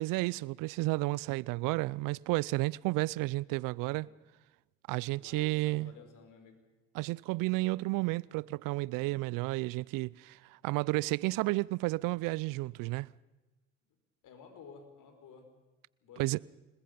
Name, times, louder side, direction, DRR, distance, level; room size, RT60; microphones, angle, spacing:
voice 1, 0.0-4.1 4.9-5.9 6.9-13.1 16.2-16.4, right 21 dB, 65° right, 0.6 m, -32 dB
voice 2, 5.1-6.6 14.2-15.5 16.0-16.4, left 5 dB, 60° left, 5.3 m, -53 dB
27.5 x 20.5 x 5.4 m
hypercardioid pair, 70°, 35 cm